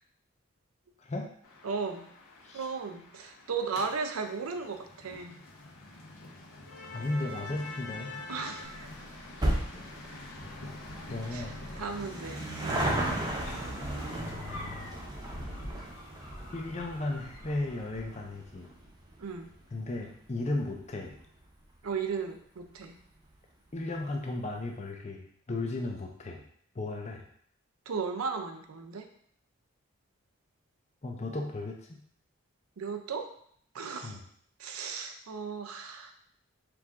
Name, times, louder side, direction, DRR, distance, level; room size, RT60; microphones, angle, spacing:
voice 1, 1.0-1.3 2.4-2.7 6.9-8.1 11.1-11.6 14.2-14.9 16.5-18.7 19.7-21.2 23.7-26.4 26.7-27.2 31.0-32.0 34.0-34.2, left 2 dB, 30° left, 2 dB, 0.5 m, -35 dB
sound 1, 1.4-14.3, left 2 dB, 90° left, 1.1 m, -46 dB
voice 2, 1.6-2.1 2.5-5.4 8.3-8.9 11.3-11.4 11.8-12.9 19.2-19.5 21.8-23.0 27.9-29.1 32.8-33.3 33.7-34.2 34.6-36.1, right 5 dB, 90° right, 6 dB, 0.5 m, -35 dB
sound 2, 8.6-21.4 21.7-21.8 22.7-22.8 23.0-23.1 23.3-23.4, right 1 dB, 20° right, 0.6 m, -36 dB
sound 3, 13.8-18.4, left 1 dB, 60° left, 1.1 m, -45 dB
4.6 x 2.5 x 3.5 m, 0.63 s
head